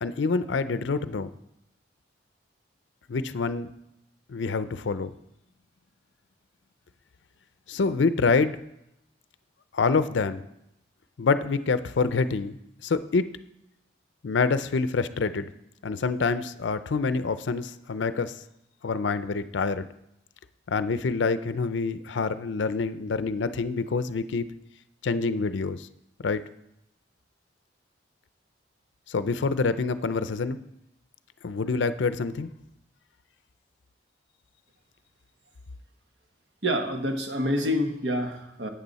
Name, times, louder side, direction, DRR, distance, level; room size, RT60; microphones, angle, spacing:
voice 1, 0.0-1.3 3.1-3.7 4.3-5.1 7.7-8.6 9.7-10.4 11.2-13.3 14.2-15.5 15.8-18.3 18.8-19.9 20.7-24.5 25.0-25.9 26.2-26.4 29.1-30.6 31.4-32.5, left 4 dB, 80° left, 13 dB, 0.5 m, -26 dB
voice 2, 36.6-38.7, equal, 70° right, 4 dB, 1.3 m, -27 dB
11.5 x 8.5 x 4.1 m, 0.81 s
head